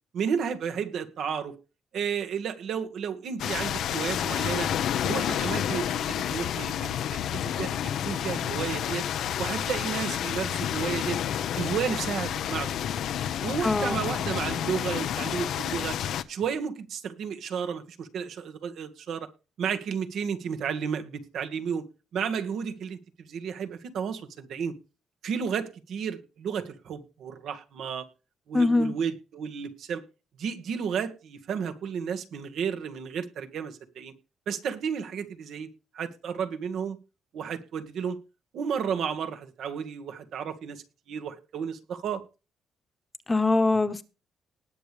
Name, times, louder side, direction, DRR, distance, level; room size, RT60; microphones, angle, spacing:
voice 1, 0.1-1.5 1.9-4.7 5.0-9.0 9.4-11.2 11.6-12.7 13.4-16.0 16.3-19.3 19.6-21.8 22.1-24.7 25.2-28.1 28.5-30.0 30.4-34.1 34.5-35.7 35.9-37.0 37.3-38.2 38.5-42.2, right 7 dB, 70° right, 1.9 m, -32 dB
sound 1, 3.4-16.2, left 10 dB, 75° left, 0.8 m, -30 dB
voice 2, 13.6-14.0 28.5-28.9 43.3-44.0, left 3 dB, 20° left, 1.2 m, -23 dB
19.5 x 7.0 x 3.4 m
cardioid pair, 90°, 0 cm